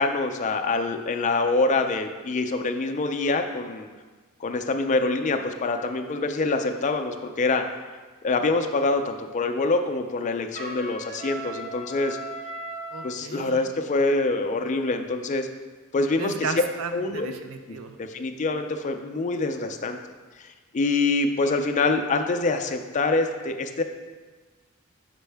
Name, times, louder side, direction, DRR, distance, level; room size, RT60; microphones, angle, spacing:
voice 1, 0.0-3.9 4.4-7.6 8.2-12.2 13.0-15.5 15.9-16.5 16.9-17.3 18.0-20.0 20.4-20.5 20.7-23.8, left 3 dB, 35° left, 6 dB, 0.4 m, -25 dB
Trumpet, 10.5-13.1, right 1 dB, 35° right, 1.9 m, -37 dB
voice 2, 12.9-13.6 16.2-17.9, right 4 dB, 75° right, 7 dB, 0.5 m, -34 dB
5.5 x 5.2 x 3.4 m, 1.4 s
head